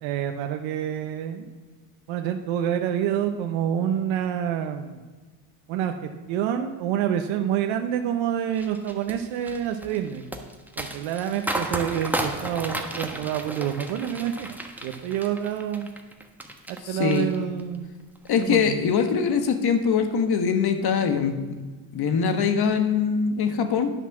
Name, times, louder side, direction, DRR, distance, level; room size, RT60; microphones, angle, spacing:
voice 1, 0.0-1.5 2.1-5.0 5.7-10.2 10.8-15.9 16.7-17.9 18.4-18.8, right 9 dB, 75° right, 6 dB, 0.8 m, -27 dB
sound 1, 8.5-16.8 17.1-17.8 18.2-18.4, right 1 dB, 5° right, 1.2 m, -33 dB
voice 2, 16.8-17.3 18.3-21.6 21.9-23.9, left 6 dB, 50° left, 8 dB, 1.4 m, -23 dB
10.0 x 6.0 x 6.0 m, 1.3 s
supercardioid pair, 80°, 48 cm